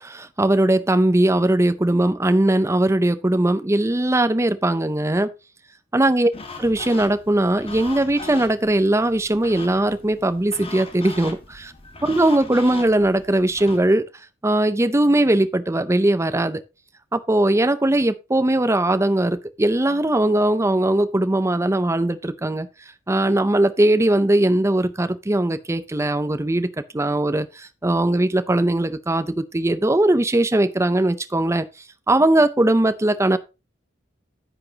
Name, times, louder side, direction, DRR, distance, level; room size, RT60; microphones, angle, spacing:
voice 1, 0.0-5.3 5.9-6.3 6.6-11.7 12.0-14.1 14.4-16.6 17.1-22.7 23.1-26.7 26.9-31.7 32.1-33.4, right 1 dB, 15° right, 0.6 m, -20 dB
sound 1, 6.3-13.8, left 2 dB, 30° left, 1.6 m, -39 dB
10.0 x 8.3 x 2.9 m
head